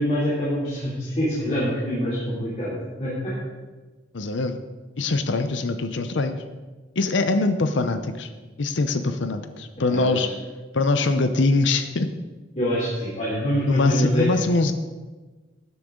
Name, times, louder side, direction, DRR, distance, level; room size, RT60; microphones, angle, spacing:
voice 1, 0.0-3.3 9.9-10.3 12.6-14.3, equal, 35° left, -9 dB, 3.0 m, -25 dB
voice 2, 4.1-4.6 5.0-6.4 7.0-8.3 8.6-10.3 10.7-12.1 13.7-14.7, left 3 dB, 85° left, 9 dB, 0.7 m, -23 dB
13.0 x 10.0 x 3.8 m, 1.3 s
head